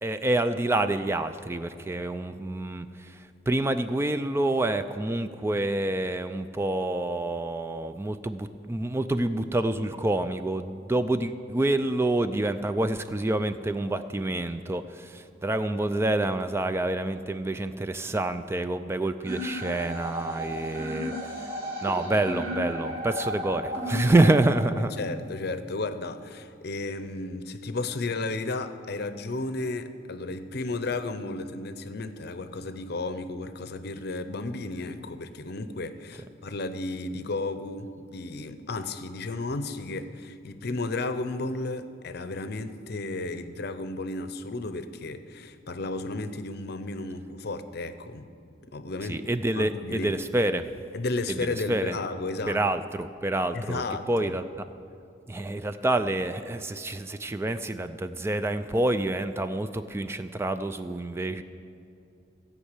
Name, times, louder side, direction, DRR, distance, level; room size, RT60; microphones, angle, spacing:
voice 1, 0.0-21.5 21.8-25.0 49.1-50.7 51.3-52.0 52.5-53.8 54.1-54.4 55.3-61.4, right 2 dB, 15° right, 10 dB, 0.3 m, -27 dB
sound 1, 19.2-25.2, equal, 55° right, 2.6 m, -34 dB
voice 2, 25.0-48.3 48.7-49.2 49.5-50.1 50.9-52.6 53.5-54.3, left 2 dB, 60° left, 11 dB, 0.7 m, -33 dB
15.5 x 5.4 x 8.2 m, 2.6 s
head